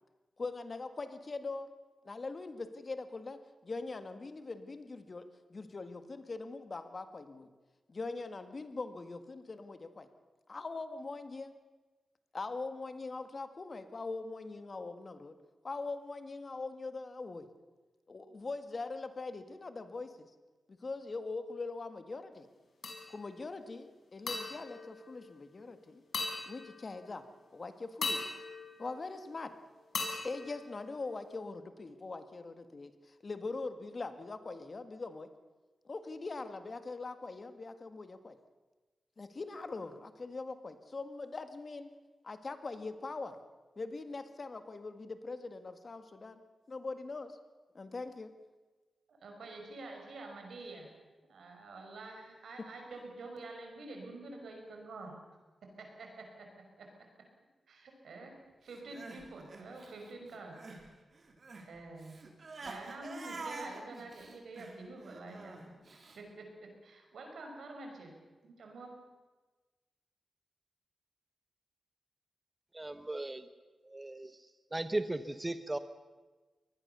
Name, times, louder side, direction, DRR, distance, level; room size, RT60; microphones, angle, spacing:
voice 1, 0.4-1.7 2.0-7.5 7.9-10.1 10.5-11.6 12.3-15.4 15.6-17.5 18.1-20.3 20.7-22.5 23.1-26.0 26.5-27.2 27.5-28.2 28.8-29.5 30.2-35.3 35.9-38.4 39.2-41.9 42.2-43.4 43.8-46.4 46.7-47.4 47.7-48.4, left 3 dB, 40° left, 9 dB, 1.7 m, -42 dB
sound 1, 22.8-23.4 24.3-25.7 26.1-27.2 28.0-29.5 29.9-31.4, left 3 dB, 70° left, 5.4 m, -40 dB
voice 2, 49.1-50.9 51.3-55.2 55.8-56.9 57.7-60.6 61.6-62.2 62.6-65.7 66.2-68.1 68.4-68.9, right 2 dB, 85° right, 2 dB, 5.6 m, -47 dB
Crying sobbing, 58.7-60.9 61.1-66.2, right 3 dB, 50° right, 3.7 m, -47 dB
voice 3, 72.7-73.4 73.9-74.3 74.7-75.8, right 2 dB, 20° right, 10 dB, 0.9 m, -36 dB
23.5 x 19.5 x 6.8 m, 1.3 s
wide cardioid pair, 95°, 0 cm